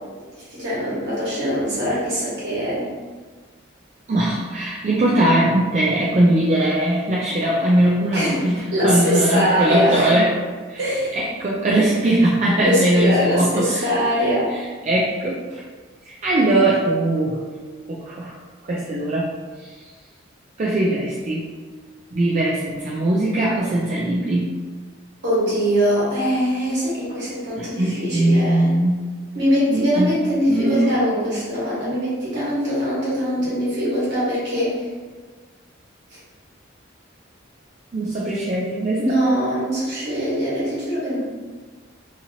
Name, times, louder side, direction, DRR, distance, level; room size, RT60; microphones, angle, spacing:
voice 1, 0.3-2.9 8.1-10.1 10.8-11.2 12.6-14.5 25.2-28.7 29.3-34.8 39.0-41.2, equal, 60° right, -8 dB, 1.3 m, -22 dB
voice 2, 4.1-10.8 11.1-13.9 14.9-15.6 16.0-17.4 17.9-18.3 18.6-19.3 19.6-19.7 20.6-21.4 22.1-24.5 27.6-29.1 29.7-30.2 30.5-31.0 37.9-39.2, right 1 dB, 35° right, -4 dB, 0.3 m, -20 dB
2.8 x 2.7 x 2.7 m, 1.4 s
head